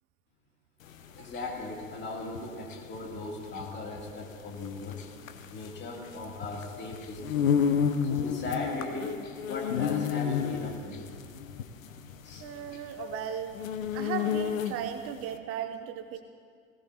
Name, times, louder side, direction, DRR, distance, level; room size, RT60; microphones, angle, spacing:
sound 1, 0.9-15.1, left 7 dB, 70° left, 0.8 m, -31 dB
voice 1, 1.2-7.5 8.0-9.2 9.5-11.0 12.2-12.4 13.0-13.1, left 3 dB, 25° left, -2 dB, 2.8 m, -38 dB
voice 2, 12.4-13.6 13.9-16.2, right 9 dB, 35° right, 9 dB, 0.7 m, -36 dB
19.0 x 17.0 x 2.8 m, 2.3 s
figure-of-eight pair, 80°, 42 cm